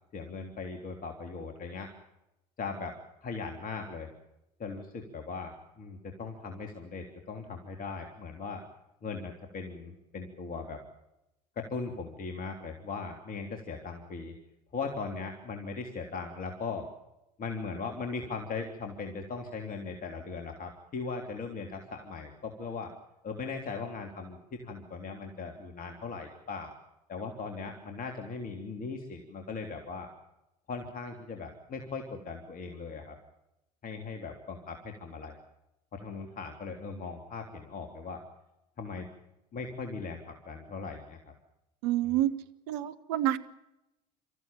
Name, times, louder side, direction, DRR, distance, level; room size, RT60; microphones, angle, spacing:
voice 1, 0.1-1.9 2.6-4.1 4.6-8.6 9.0-10.8 11.5-14.3 14.7-16.9 17.4-22.9 23.2-26.7 27.1-30.1 30.7-33.1 33.8-35.4 35.9-38.2 38.8-39.1 39.5-41.3, left 4 dB, 45° left, 4 dB, 3.3 m, -39 dB
voice 2, 41.8-42.3 42.7-43.4, right 13 dB, 70° right, 11 dB, 1.3 m, -28 dB
27.0 x 14.5 x 8.9 m, 0.90 s
hypercardioid pair, 70°, 21 cm